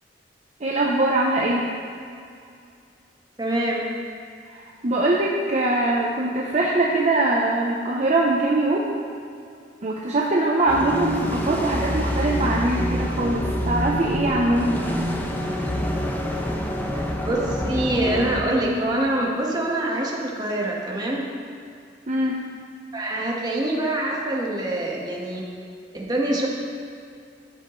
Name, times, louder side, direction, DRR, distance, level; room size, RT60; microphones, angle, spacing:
voice 1, 0.6-1.6 4.5-8.9 9.8-15.1 22.1-22.4, right 2 dB, 40° right, -3 dB, 0.8 m, -22 dB
voice 2, 3.4-3.9 17.2-21.3 22.9-25.4 25.9-26.5, right 1 dB, 25° right, -3 dB, 1.5 m, -25 dB
sound 1, 10.7-18.4, equal, 10° left, 0.8 m, -26 dB
14.5 x 7.7 x 3.2 m, 2.4 s
head